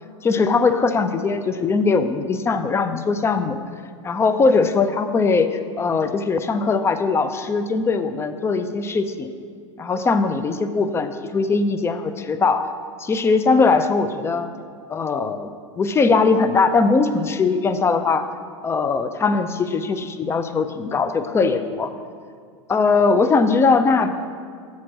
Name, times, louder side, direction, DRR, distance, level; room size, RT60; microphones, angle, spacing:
voice 1, 0.2-3.6 4.0-9.3 9.8-12.7 13.0-14.5 14.9-15.5 15.8-18.3 18.6-21.9 22.7-24.1, left 4 dB, 15° left, 10 dB, 0.4 m, -20 dB
7.2 x 4.4 x 6.3 m, 2.2 s
hypercardioid pair, 100°, 16 cm